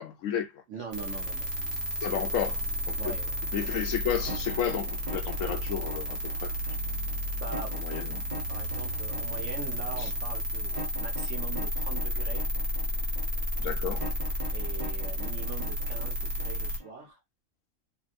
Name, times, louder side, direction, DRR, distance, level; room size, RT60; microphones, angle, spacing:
voice 1, 0.0-0.6 2.0-2.6 2.9-3.1 3.5-6.5 7.7-8.2 13.6-14.1, left 9 dB, 75° left, 0.9 m, -32 dB
voice 2, 0.7-1.7 2.1-2.3 3.0-3.3 3.6-3.8 7.3-7.8 8.5-12.5 14.5-17.2, right 5 dB, 65° right, 1.2 m, -42 dB
sound 1, 0.9-16.8, equal, 80° right, 1.4 m, -32 dB
sound 2, 4.2-17.1, right 1 dB, 35° right, 0.9 m, -42 dB
2.9 x 2.6 x 2.5 m
omnidirectional pair, 1.4 m